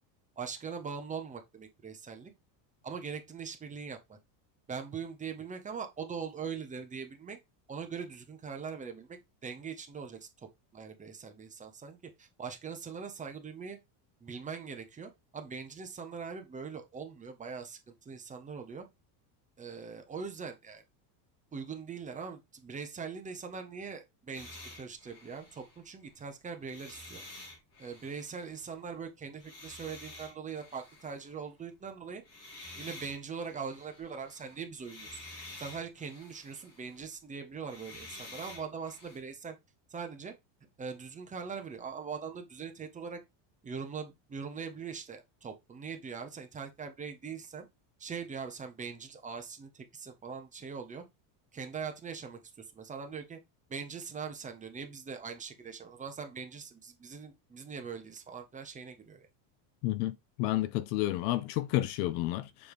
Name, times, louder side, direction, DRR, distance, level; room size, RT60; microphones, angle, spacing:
voice 1, 0.4-2.3 2.8-4.2 4.7-7.4 7.7-13.8 14.2-18.8 19.6-20.8 21.5-27.2 27.8-32.2 32.8-35.2 35.6-39.6 39.9-40.3 40.8-43.2 43.6-47.7 48.0-51.0 51.5-53.4 53.7-59.3, right 6 dB, 15° right, 0.8 m, -42 dB
sound 1, 24.3-26.2 26.6-28.7 29.4-31.4 32.2-37.1 37.5-39.2, left 2 dB, 30° left, 3.0 m, -50 dB
voice 2, 59.8-62.7, left 16 dB, 55° left, 0.6 m, -31 dB
7.0 x 4.8 x 3.4 m
cardioid pair, 160°, 50 cm